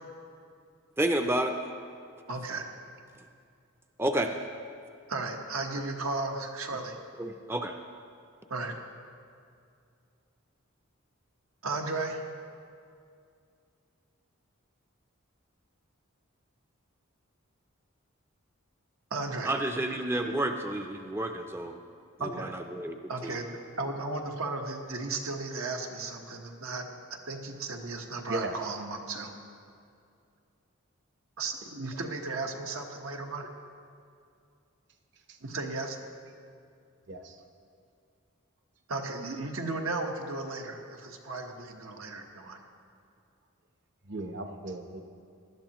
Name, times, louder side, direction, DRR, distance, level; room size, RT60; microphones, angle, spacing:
voice 1, 1.0-1.6 4.0-4.3 7.2-7.7 19.4-21.7 22.4-23.0 23.2-23.3, right 1 dB, 10° right, 5 dB, 0.4 m, -30 dB
voice 2, 2.3-2.7 5.1-7.0 8.5-8.8 11.6-12.2 19.1-19.5 22.2-22.5 23.1-26.9 27.3-29.3 31.4-33.5 35.4-36.0 38.9-42.6, right 3 dB, 85° right, 2 dB, 1.2 m, -35 dB
voice 3, 28.3-28.8 35.3-35.4 37.1-37.4 44.1-45.0, right 2 dB, 55° right, 5 dB, 0.9 m, -36 dB
18.5 x 12.0 x 3.0 m, 2.4 s
head